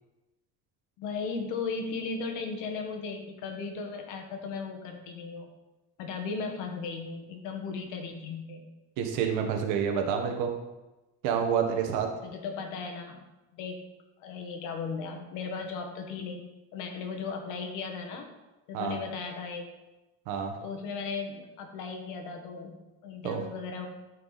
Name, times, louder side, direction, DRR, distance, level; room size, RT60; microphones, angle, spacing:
voice 1, 1.0-5.5 6.0-8.7 12.2-13.3 13.5-13.8 14.2-16.4 16.7-18.3 18.7-19.7 20.6-22.8 23.0-23.9, left 4 dB, 70° left, 4 dB, 1.7 m, -36 dB
voice 2, 9.0-10.5 11.2-12.1 18.7-19.0 20.3-20.5 23.2-23.4, right 7 dB, 80° right, 4 dB, 1.5 m, -28 dB
12.5 x 4.7 x 4.2 m, 1.0 s
cardioid pair, 150°, 32 cm